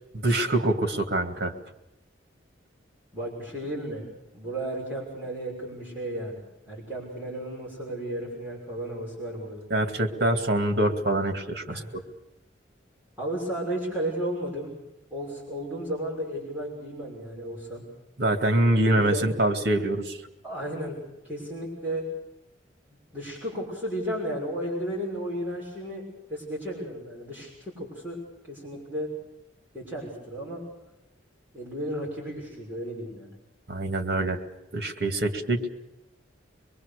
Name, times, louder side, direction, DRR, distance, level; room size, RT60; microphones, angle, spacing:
voice 1, 0.2-1.5 9.7-11.8 18.2-20.2 33.7-34.4 34.7-35.6, right 1 dB, 55° right, 6 dB, 2.4 m, -24 dB
voice 2, 3.1-4.1 4.3-9.6 11.7-11.9 13.2-14.7 15.1-17.8 18.9-19.3 20.4-21.0 21.2-22.1 23.1-26.0 26.3-28.2 28.4-29.1 29.7-30.6 31.5-33.3, right 1 dB, 10° right, -5 dB, 6.2 m, -33 dB
24.5 x 22.5 x 6.8 m, 0.89 s
head